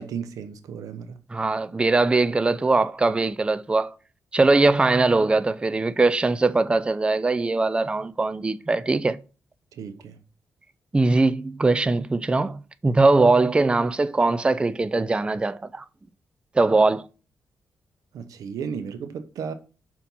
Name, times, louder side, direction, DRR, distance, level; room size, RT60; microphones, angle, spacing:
voice 1, 0.0-1.2 9.7-10.2 18.1-19.5, right 6 dB, 85° right, 0.8 m, -34 dB
voice 2, 1.3-4.0 4.3-9.2 10.9-15.8 16.5-17.1, right 3 dB, 15° right, 0.4 m, -21 dB
5.8 x 4.3 x 5.5 m
cardioid pair, 85°, 6 cm